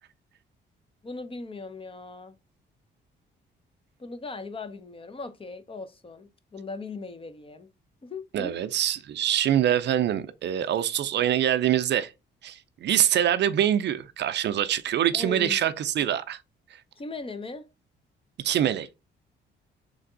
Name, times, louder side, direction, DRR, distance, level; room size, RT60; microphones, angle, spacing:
voice 1, 1.0-2.4 4.0-7.7 8.0-8.6 15.1-15.6 17.0-17.6, left 3 dB, 25° left, 0.8 m, -38 dB
voice 2, 8.3-12.1 12.4-16.4 18.4-18.9, right 10 dB, 60° right, 0.5 m, -24 dB
3.8 x 3.3 x 3.8 m
cardioid pair, 90°, 20 cm